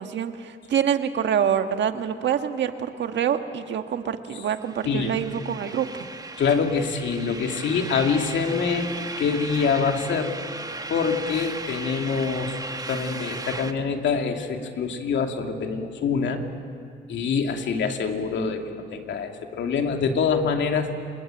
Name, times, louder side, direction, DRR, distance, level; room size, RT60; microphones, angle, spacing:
voice 1, 0.0-6.1, right 8 dB, 65° right, 7 dB, 1.6 m, -26 dB
sound 1, 4.6-13.7, right 3 dB, 20° right, 1.2 m, -36 dB
voice 2, 6.4-8.9 9.2-10.4 10.9-16.4 17.1-20.9, left 5 dB, 65° left, 4 dB, 2.6 m, -25 dB
26.5 x 21.0 x 9.0 m, 2.4 s
cardioid pair, 90°, 20 cm